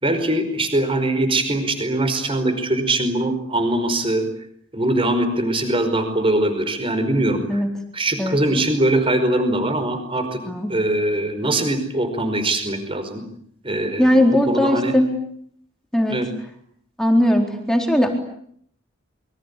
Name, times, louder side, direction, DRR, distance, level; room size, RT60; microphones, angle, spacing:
voice 1, 0.0-4.2 4.7-7.6 7.9-10.4 10.7-13.2 13.6-14.2 14.5-14.9 16.1-16.3, right 1 dB, 25° right, 9 dB, 5.1 m, -22 dB
voice 2, 14.0-15.1 15.9-16.2 17.0-18.1, left 1 dB, 5° left, 3 dB, 4.0 m, -18 dB
28.0 x 24.0 x 8.5 m, 0.67 s
head